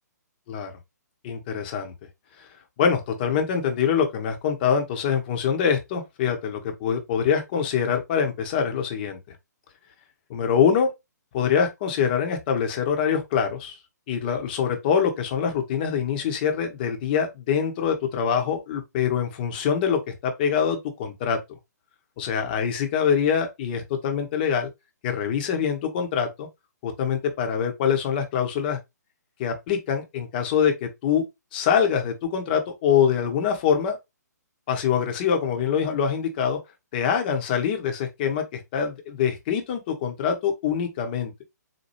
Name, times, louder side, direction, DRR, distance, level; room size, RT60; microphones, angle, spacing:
voice 1, 1.2-1.9 2.8-9.2 10.3-10.9 11.3-13.8 14.1-21.4 22.2-24.7 25.0-26.5 26.8-28.8 29.4-31.2 31.5-34.0 34.7-36.6 36.9-41.3, left 7 dB, 30° left, 0.8 m, -24 dB
4.3 x 2.2 x 3.0 m
figure-of-eight pair, 130°, 10 cm